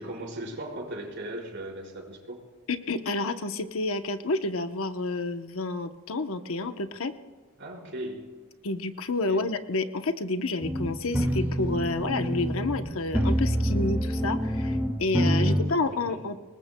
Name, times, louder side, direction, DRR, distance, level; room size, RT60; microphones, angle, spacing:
voice 1, 0.0-2.4 7.6-8.3 9.3-9.5 15.4-16.2, right 1 dB, 60° right, -1 dB, 4.7 m, -38 dB
voice 2, 2.7-7.1 8.6-16.4, left 3 dB, 75° left, 8 dB, 0.9 m, -29 dB
sound 1, 10.6-15.6, equal, 10° right, 1.8 m, -26 dB
26.0 x 20.5 x 2.3 m, 1.5 s
head